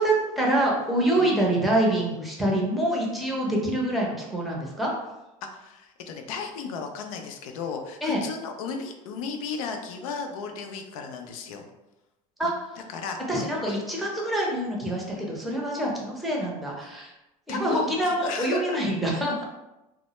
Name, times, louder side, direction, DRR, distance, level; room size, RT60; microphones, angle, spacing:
voice 1, 0.0-4.9 8.0-8.2 12.4-12.5 13.3-17.1 17.5-19.4, right 1 dB, ahead, -3 dB, 0.6 m, -26 dB
voice 2, 5.4-11.7 12.4-12.5 12.8-13.8 17.5-18.8, left 5 dB, 75° left, 4 dB, 0.4 m, -35 dB
2.1 x 2.0 x 2.9 m, 0.97 s
hypercardioid pair, 95°, 18 cm